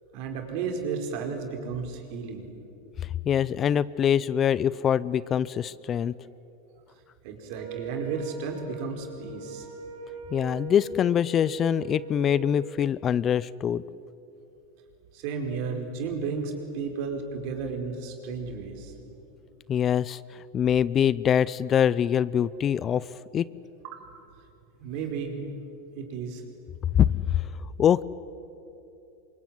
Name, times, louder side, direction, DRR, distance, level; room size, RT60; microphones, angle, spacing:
voice 1, 0.1-2.5 7.2-9.7 15.1-18.9 23.8-23.9 24.8-25.5 25.9-26.4, right 5 dB, 60° right, 3 dB, 4.9 m, -33 dB
voice 2, 3.2-6.1 10.3-13.8 19.7-23.1 23.3-23.5 27.0-28.0, left 9 dB, 30° left, 20 dB, 0.6 m, -24 dB
Wind instrument woodwind instrument, 7.5-12.7, right 6 dB, 85° right, 5.5 m, -40 dB
24.5 x 22.5 x 9.5 m, 2.8 s
supercardioid pair, 120°, 0 cm